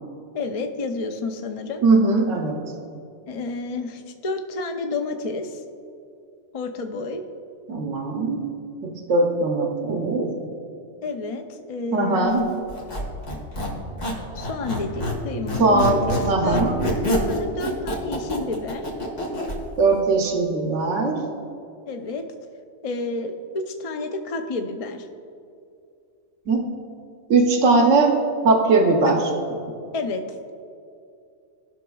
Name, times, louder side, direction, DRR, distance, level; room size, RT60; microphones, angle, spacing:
voice 1, 0.3-1.8 3.3-5.6 6.5-7.2 11.0-12.5 14.3-16.6 17.3-18.9 21.9-22.2 22.8-25.1 29.0-29.2 29.9-30.2, left 3 dB, 45° left, 5 dB, 0.5 m, -30 dB
voice 2, 1.8-2.7 7.7-8.5 8.8-10.3 11.9-12.4 15.6-16.7 19.8-21.2 26.5-26.7 27.3-28.1 28.4-29.3, right 3 dB, 90° right, 2 dB, 1.2 m, -20 dB
Squeak, 12.7-15.2 15.5-19.6, equal, 75° left, 2.0 m, -26 dB
18.0 x 5.9 x 2.3 m, 2.5 s
omnidirectional pair, 1.2 m